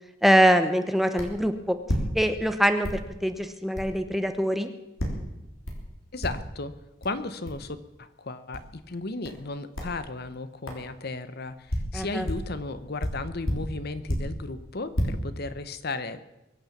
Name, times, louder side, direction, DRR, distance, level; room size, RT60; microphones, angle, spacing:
voice 1, 0.2-1.8 2.1-4.7 11.9-12.3, equal, ahead, 8 dB, 0.8 m, -23 dB
sound 1, 1.2-1.4 1.8-2.5 2.8-3.1 3.7-3.9 5.0-5.3 5.6-5.9 6.2-6.6 7.0-7.1 7.4-7.6 8.5-8.7 9.2-9.5 9.7-10.0 10.7-10.8 11.4-12.6 13.0-14.4 14.8-15.0, equal, 70° left, 3.7 m, -31 dB
voice 2, 6.1-6.8 7.0-16.2, left 3 dB, 50° left, 13 dB, 0.8 m, -35 dB
22.5 x 8.7 x 7.3 m, 0.96 s
head